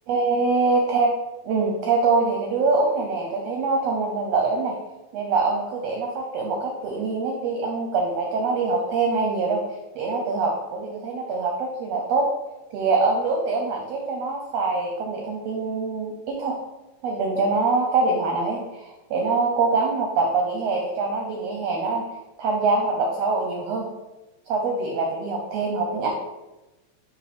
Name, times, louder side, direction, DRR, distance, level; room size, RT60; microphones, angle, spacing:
voice 1, 0.1-1.1 1.4-4.8 5.1-9.6 10.0-12.3 12.7-16.6 17.0-22.0 22.4-23.9 24.5-26.1, right 3 dB, 75° right, 1 dB, 1.6 m, -24 dB
6.3 x 3.1 x 5.1 m, 1.0 s
omnidirectional pair, 3.6 m